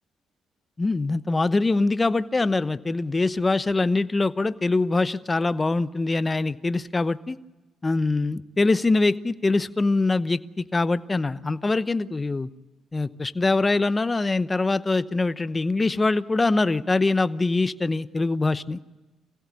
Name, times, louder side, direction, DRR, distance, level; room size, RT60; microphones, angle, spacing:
voice 1, 0.8-7.4 7.8-12.5 12.9-18.8, left 3 dB, 25° left, 14 dB, 0.9 m, -23 dB
24.5 x 16.5 x 8.4 m, 1.1 s
cardioid pair, 90°, 0 cm